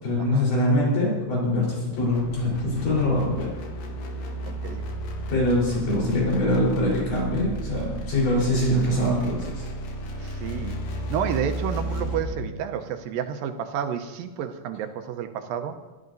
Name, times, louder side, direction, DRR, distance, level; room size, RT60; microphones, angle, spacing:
voice 1, 0.0-3.5 5.3-9.6, left 1 dB, 70° left, -5 dB, 5.7 m, -23 dB
sound 1, 2.0-12.4, right 1 dB, 90° left, 3.3 m, -33 dB
voice 2, 4.5-4.8 10.2-10.8 11.1-15.8, right 8 dB, 85° right, 7 dB, 2.6 m, -30 dB
21.0 x 13.0 x 2.7 m, 1.2 s
omnidirectional pair, 4.0 m